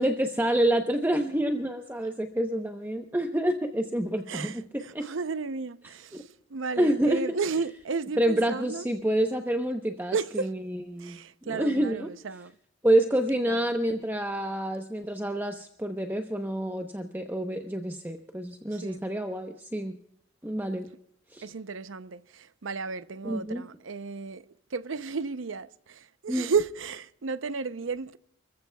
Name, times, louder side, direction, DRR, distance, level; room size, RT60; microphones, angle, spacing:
voice 1, 0.0-5.1 6.1-6.2 6.8-7.2 8.2-11.2 11.4-12.1 12.8-20.0 20.4-20.9 21.3-21.5 23.2-23.7 26.3-26.5, right 1 dB, 10° right, 0.8 m, -28 dB
voice 2, 4.3-8.9 10.1-10.5 11.0-12.5 13.5-13.6 18.7-19.0 21.4-24.4 24.7-28.2, right 5 dB, 85° right, 0.6 m, -33 dB
30.0 x 14.5 x 2.3 m
head